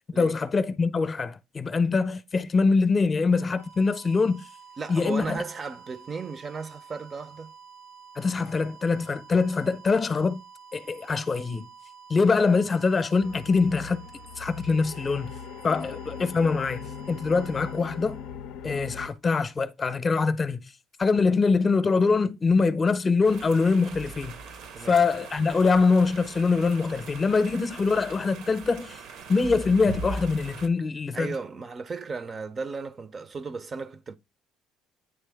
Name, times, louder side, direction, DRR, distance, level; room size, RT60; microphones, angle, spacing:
voice 1, 0.2-4.4 4.9-5.4 8.2-10.4 10.7-11.6 12.1-14.0 14.4-15.3 15.6-18.2 18.6-20.6 21.0-24.4 24.9-29.0 29.3-31.3, left 4 dB, 30° left, 0.7 m, -24 dB
sound 1, 3.2-19.0, right 6 dB, 90° right, 1.9 m, -50 dB
voice 2, 4.8-7.5 15.7-15.9 24.7-25.0 31.1-34.2, right 4 dB, 35° right, 0.5 m, -35 dB
sound 2, 13.2-19.1, left 8 dB, 80° left, 0.4 m, -40 dB
sound 3, 23.2-30.7, right 3 dB, 70° right, 0.8 m, -40 dB
9.1 x 3.3 x 3.4 m
supercardioid pair, 85°, 0 cm